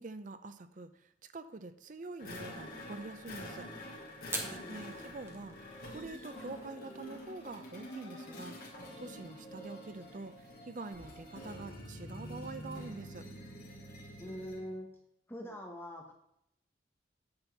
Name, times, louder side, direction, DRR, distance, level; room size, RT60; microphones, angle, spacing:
voice 1, 0.0-3.7 4.4-8.6 9.0-13.2, right 3 dB, 40° right, 11 dB, 0.6 m, -46 dB
sound 1, 2.2-14.7, equal, 45° left, 2.6 m, -47 dB
Fire, 4.2-13.4, right 2 dB, 15° right, 1.1 m, -50 dB
voice 2, 4.4-5.1 14.2-14.9 15.3-16.1, equal, 10° left, 1 dB, 1.1 m, -44 dB
8.7 x 4.5 x 7.1 m, 0.77 s
head